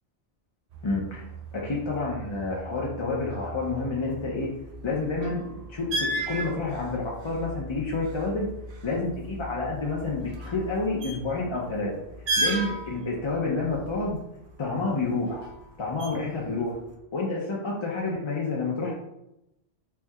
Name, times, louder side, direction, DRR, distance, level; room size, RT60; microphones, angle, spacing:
sound 1, 0.7-16.9, right 1 dB, 50° right, 0.5 m, -36 dB
voice 1, 0.8-4.5 4.8-8.5 8.8-11.9 12.4-14.2 14.6-15.5 15.8-16.8 17.1-18.9, left 3 dB, 40° left, -3 dB, 0.4 m, -29 dB
4.4 x 2.6 x 2.3 m, 0.87 s
omnidirectional pair, 1.1 m